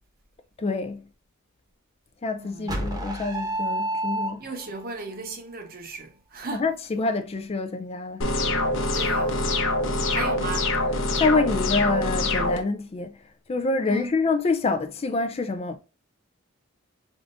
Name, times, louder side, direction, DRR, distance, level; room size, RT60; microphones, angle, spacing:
voice 1, 0.6-1.0 2.2-4.4 6.5-8.2 11.2-13.1 13.5-15.8, left 3 dB, 30° left, 0.4 m, -26 dB
voice 2, 2.4-2.9 4.4-6.8 8.9-9.4 10.1-10.8 13.8-14.2, right 3 dB, 45° right, 0.9 m, -36 dB
sound 1, 2.7-4.8, right 1 dB, 20° right, 0.9 m, -29 dB
sound 2, 8.2-12.6, left 2 dB, 60° left, 0.8 m, -24 dB
4.9 x 3.6 x 2.5 m
head